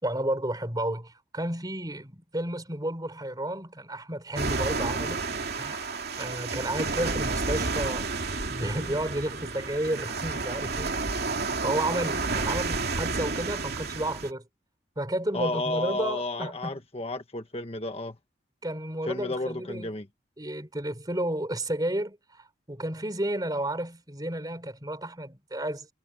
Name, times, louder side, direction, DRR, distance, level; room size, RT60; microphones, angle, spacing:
voice 1, 0.0-5.2 5.6-8.1 8.5-10.9 11.6-14.5 15.0-16.8 18.6-19.9 20.4-25.9, right 1 dB, 20° right, 3.9 m, -32 dB
sound 1, 4.4-14.3, right 3 dB, 55° right, 2.8 m, -30 dB
voice 2, 15.3-18.2 19.1-20.0, left 2 dB, 30° left, 1.5 m, -32 dB
head